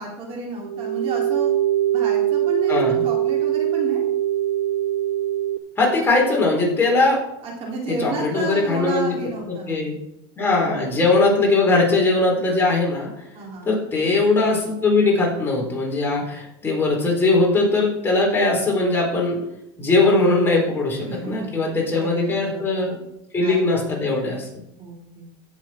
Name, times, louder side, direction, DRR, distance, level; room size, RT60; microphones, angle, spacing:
voice 1, 0.0-1.5 1.9-4.0 7.4-9.8 13.3-13.8 21.0-22.8 23.4-24.0 24.8-25.3, right 2 dB, 45° right, -1 dB, 3.6 m, -32 dB
sound 1, 0.6-5.6, right 12 dB, 85° right, 0.8 m, -22 dB
voice 2, 2.7-3.0 5.8-7.2 8.0-9.1 9.7-9.9 10.4-13.1 13.6-19.4 19.8-23.0 23.3-24.6, left 3 dB, 15° left, -3 dB, 4.3 m, -20 dB
16.5 x 7.4 x 4.5 m, 0.85 s
supercardioid pair, 130°, 14 cm